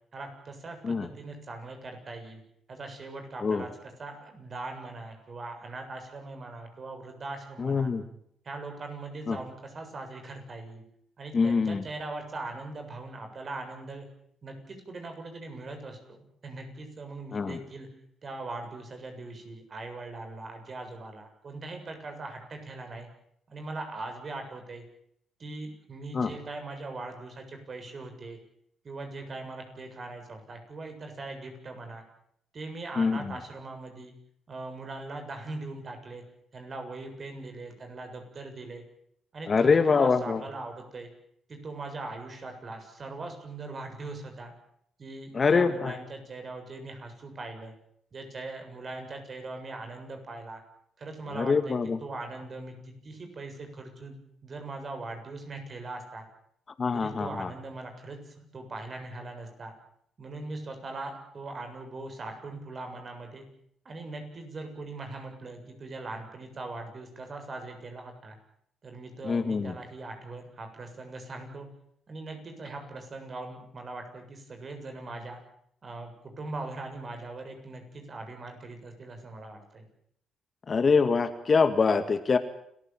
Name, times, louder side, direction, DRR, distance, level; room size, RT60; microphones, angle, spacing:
voice 1, 0.1-2.4 2.7-7.9 8.4-10.8 11.2-14.1 14.4-17.9 18.2-23.1 23.5-24.8 25.4-28.4 28.8-32.0 32.5-34.1 34.5-36.2 36.5-38.8 39.3-41.1 41.5-44.5 45.0-47.8 48.1-50.6 51.0-56.2 56.9-59.7 60.2-63.5 63.8-68.4 68.8-71.7 72.1-75.4 75.8-79.9, right 2 dB, 40° right, 5 dB, 7.4 m, -40 dB
voice 2, 7.6-8.0 9.3-9.4 11.3-11.8 17.3-17.6 26.1-26.3 33.0-33.2 39.5-40.4 45.3-45.9 51.4-52.0 56.8-57.5 69.3-69.7 80.7-82.4, left 5 dB, 40° left, 10 dB, 2.0 m, -24 dB
29.5 x 14.5 x 9.3 m, 0.70 s
cardioid pair, 90°, 0 cm